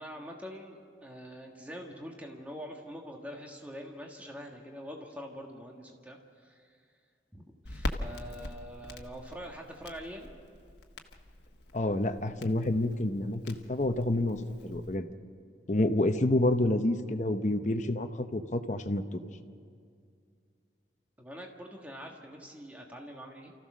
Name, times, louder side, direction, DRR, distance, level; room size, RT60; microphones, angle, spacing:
voice 1, 0.0-6.8 7.3-10.3 21.2-23.5, equal, 10° right, 1 dB, 1.6 m, -44 dB
Crackle, 7.6-15.0, left 1 dB, 75° left, 1.3 m, -42 dB
voice 2, 11.7-15.1 15.7-19.2, left 1 dB, 40° left, 8 dB, 0.9 m, -28 dB
29.0 x 14.5 x 6.3 m, 2.3 s
head